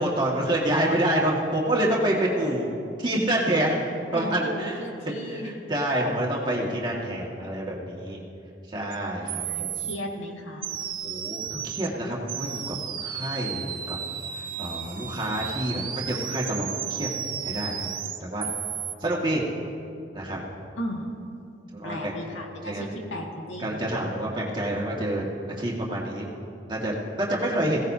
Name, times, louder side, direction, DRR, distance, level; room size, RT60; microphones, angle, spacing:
voice 1, 0.0-2.7 3.0-3.8 4.1-4.8 5.1-8.2 8.7-9.7 11.0-12.8 13.0-14.0 14.6-17.1 17.4-17.9 18.2-18.5 19.0-19.5 20.1-20.4 21.7-22.1 22.7-22.8 23.6-25.2 25.6-26.2 26.7-27.8, right 1 dB, 25° right, -3 dB, 1.9 m, -27 dB
voice 2, 4.1-5.5 9.2-10.7 20.8-21.1 21.8-23.8, equal, 85° left, -1 dB, 2.0 m, -35 dB
sound 1, 8.9-9.0 9.3-10.0 10.6-11.9 12.3-18.9, right 9 dB, 45° right, 0.7 m, -33 dB
21.0 x 16.5 x 2.8 m, 2.5 s
head